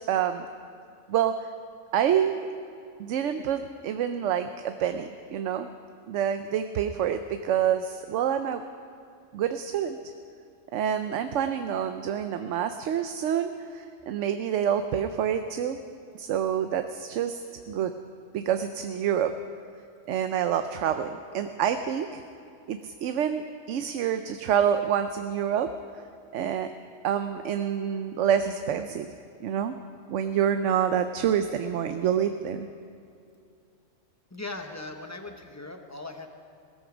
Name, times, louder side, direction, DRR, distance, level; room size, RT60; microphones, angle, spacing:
voice 1, 0.1-0.5 1.1-1.5 1.9-2.5 3.0-5.7 6.1-8.6 9.3-10.1 10.7-15.8 16.1-17.9 18.3-19.3 20.1-22.2 22.7-25.7 26.3-26.7 27.0-29.1 29.4-29.7 30.1-32.7, right 9 dB, 75° right, 8 dB, 0.9 m, -27 dB
voice 2, 34.3-36.3, left 2 dB, 15° left, 5 dB, 0.9 m, -39 dB
17.5 x 14.0 x 5.0 m, 2.5 s
omnidirectional pair, 1.3 m